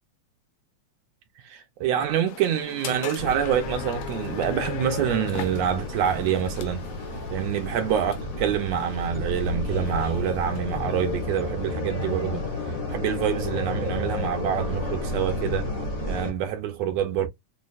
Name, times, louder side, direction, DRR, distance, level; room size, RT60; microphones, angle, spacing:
voice 1, 1.4-6.8 7.3-12.4 12.9-15.7 16.0-17.3, right 9 dB, 80° right, 1.6 m, -26 dB
sound 1, 2.3-11.7, left 11 dB, 80° left, 1.7 m, -39 dB
sound 2, 3.2-16.3, left 2 dB, 60° left, 0.8 m, -31 dB
6.1 x 2.1 x 2.4 m
omnidirectional pair, 3.3 m